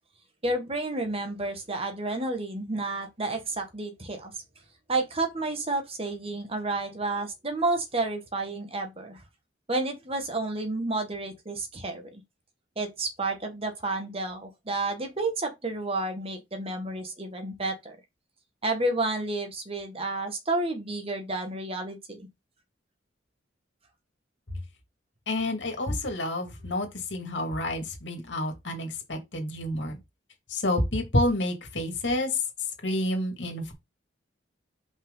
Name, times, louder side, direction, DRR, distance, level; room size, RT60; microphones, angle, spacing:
voice 1, 0.4-4.3 4.9-9.2 9.7-12.2 12.8-18.0 18.6-22.3, right 2 dB, 30° right, 1.6 m, -30 dB
voice 2, 25.3-30.0 30.5-32.4 32.8-33.7, left 1 dB, 70° left, 2.4 m, -29 dB
6.0 x 5.4 x 3.9 m
head